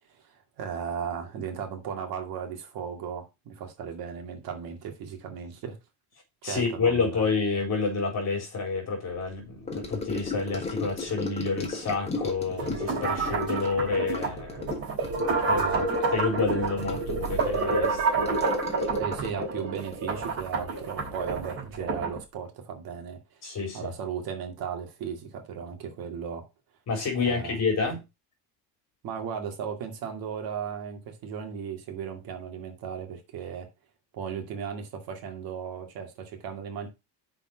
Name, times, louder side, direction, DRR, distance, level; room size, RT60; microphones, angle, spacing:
voice 1, 0.1-5.8 6.4-7.3 15.5-15.9 19.0-23.4 23.7-26.4 27.2-27.6 29.0-33.7 34.1-36.9, right 7 dB, 55° right, 2.3 m, -36 dB
voice 2, 6.4-14.7 15.5-15.6 16.1-18.1 23.4-23.9 26.9-28.0, left 4 dB, 35° left, 4.3 m, -29 dB
Gurgling / Sink (filling or washing) / Trickle dribble, 9.7-21.3 21.6-21.9 22.2-22.3, left 3 dB, 15° left, 1.6 m, -36 dB
sound 1, 12.6-22.2, right 3 dB, 30° right, 3.6 m, -29 dB
6.3 x 5.3 x 6.1 m
cardioid pair, 160°, 43 cm